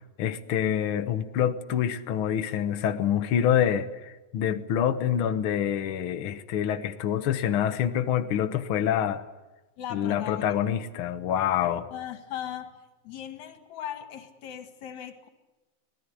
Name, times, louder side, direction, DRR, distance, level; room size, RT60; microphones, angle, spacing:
voice 1, 0.0-9.2 9.9-11.9, left 9 dB, 90° left, 9 dB, 1.1 m, -26 dB
voice 2, 9.8-10.6 11.9-12.8 13.0-15.3, left 10 dB, 55° left, 9 dB, 3.0 m, -38 dB
25.5 x 18.5 x 10.0 m, 1.1 s
omnidirectional pair, 4.1 m